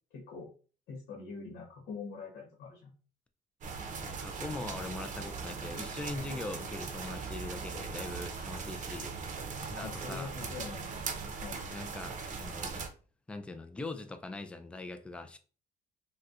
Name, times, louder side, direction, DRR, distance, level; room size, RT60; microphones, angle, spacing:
voice 1, 0.1-0.5 0.9-2.9 9.8-11.0 11.4-11.7, left 4 dB, 85° left, 0.9 m, -44 dB
sound 1, 3.6-12.9, right 5 dB, 50° right, 0.6 m, -39 dB
voice 2, 4.0-9.1 9.6-10.3 11.7-12.8 13.3-15.4, left 2 dB, 5° left, 0.3 m, -41 dB
4.0 x 2.2 x 2.4 m
cardioid pair, 110°, 17 cm